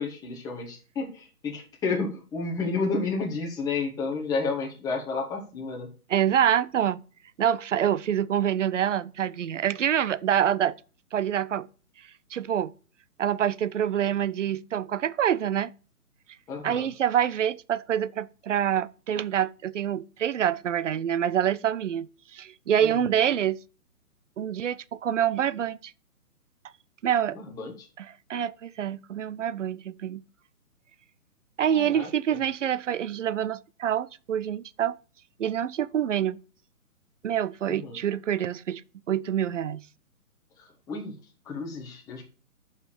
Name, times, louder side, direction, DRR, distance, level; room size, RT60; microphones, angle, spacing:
voice 1, 0.0-5.9 16.5-16.9 22.8-23.1 27.3-27.9 31.7-32.1 37.7-38.0 40.9-41.2 41.5-42.2, left 4 dB, 10° left, 1.3 m, -31 dB
voice 2, 6.1-7.0 7.4-10.7 11.1-11.7 12.3-12.7 13.2-15.7 16.6-23.6 24.4-25.9 27.0-27.4 28.0-30.2 31.6-35.0 35.4-36.4 37.2-38.8 39.1-39.8, right 9 dB, 55° right, 0.6 m, -26 dB
7.4 x 5.8 x 6.7 m
figure-of-eight pair, 145°, 45 cm